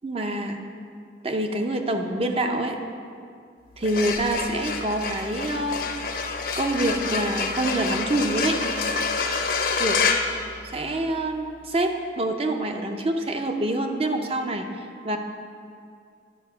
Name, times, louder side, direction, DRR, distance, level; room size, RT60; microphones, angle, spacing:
voice 1, 0.0-0.6 1.2-2.8 3.8-5.8 6.6-8.6 9.8-10.0 10.6-15.2, right 1 dB, 30° right, 4 dB, 0.6 m, -26 dB
sound 1, 3.7-11.2, left 5 dB, 50° left, 0.6 m, -28 dB
10.0 x 5.0 x 5.6 m, 2.3 s
head